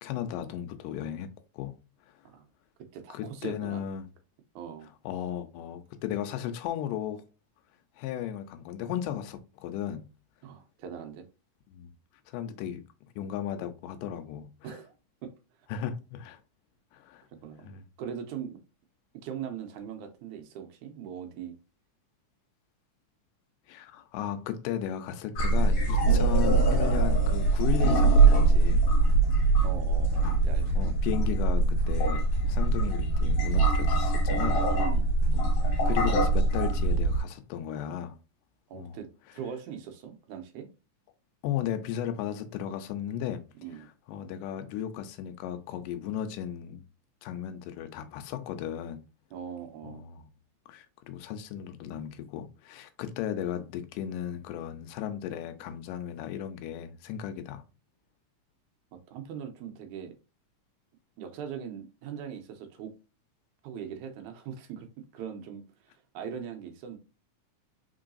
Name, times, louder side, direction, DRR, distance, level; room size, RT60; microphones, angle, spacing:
voice 1, 0.0-1.8 3.1-4.1 5.1-7.2 8.0-10.1 11.7-11.9 12.3-12.8 13.2-14.5 15.7-16.4 16.9-17.2 17.6-17.8 23.7-28.9 30.8-34.6 35.3-38.2 38.7-39.0 41.4-43.5 44.1-46.8 47.2-49.0 49.8-50.2 50.7-57.6, left 10 dB, 85° left, 2.2 m, -35 dB
voice 2, 2.9-3.9 4.6-4.9 10.4-11.3 14.6-14.9 15.2-15.3 17.4-18.6 19.2-21.6 29.6-31.0 34.7-35.1 38.7-39.1 39.3-40.7 43.6-43.9 49.3-50.0 59.1-60.1 61.2-62.9 63.6-64.9 65.1-67.0, right 8 dB, 80° right, 2.1 m, -40 dB
sound 1, 25.4-37.2, right 3 dB, 60° left, 1.7 m, -23 dB
4.6 x 3.8 x 2.5 m
omnidirectional pair, 3.7 m